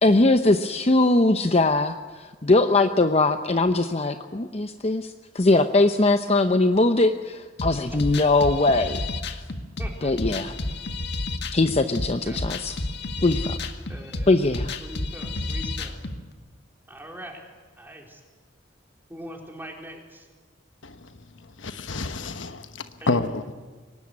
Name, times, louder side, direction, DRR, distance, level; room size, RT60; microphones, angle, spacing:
voice 1, 0.0-9.0 9.3-9.4 10.0-10.5 11.5-12.7 13.2-13.6 14.3-14.8, left 2 dB, 35° left, 8 dB, 0.8 m, -21 dB
sound 1, 7.6-16.2, left 2 dB, 60° left, 1.8 m, -31 dB
voice 2, 9.8-10.5 12.3-12.5 13.9-14.4 14.8-16.1 16.9-17.4 17.8-18.2 19.1-20.3 23.0-23.4, right 1 dB, 10° right, 1 dB, 4.1 m, -42 dB
voice 3, 20.8-21.1 21.4-23.5, left 3 dB, 80° left, 10 dB, 1.2 m, -29 dB
23.0 x 19.0 x 9.6 m, 1.4 s
head